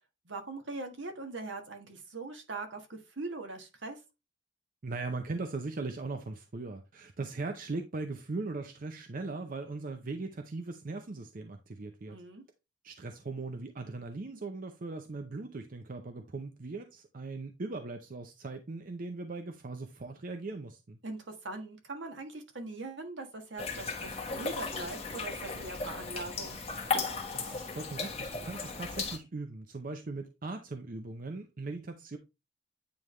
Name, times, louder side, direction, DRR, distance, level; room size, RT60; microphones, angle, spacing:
voice 1, 0.2-4.0 12.1-12.4 21.0-26.6, right 3 dB, 75° right, 1.4 m, -41 dB
voice 2, 4.8-12.2 12.8-21.0 27.3-32.2, right 3 dB, 45° right, 0.6 m, -39 dB
sound 1, 23.6-29.2, left 4 dB, 30° left, 1.2 m, -36 dB
9.1 x 3.4 x 3.1 m
head